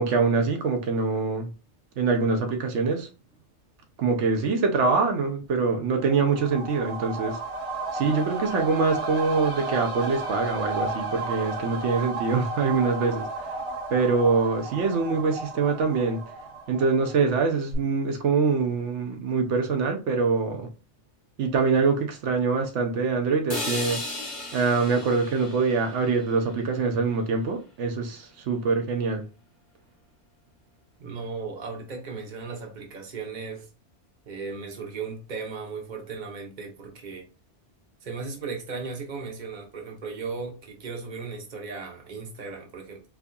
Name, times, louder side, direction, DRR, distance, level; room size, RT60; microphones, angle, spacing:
voice 1, 0.0-1.5 2.0-3.1 4.0-7.4 7.9-13.5 13.9-16.2 16.7-20.7 21.4-24.0 24.5-29.2, right 4 dB, 75° right, 1.0 m, -24 dB
sound 1, 6.0-17.4 17.7-17.8, right 3 dB, 60° right, 1.8 m, -33 dB
sound 2, 23.5-27.5, left 2 dB, 45° left, 1.3 m, -36 dB
voice 2, 31.0-33.7 34.3-37.3 38.0-43.0, right 4 dB, 40° right, 1.0 m, -36 dB
4.5 x 2.7 x 2.3 m
omnidirectional pair, 1.2 m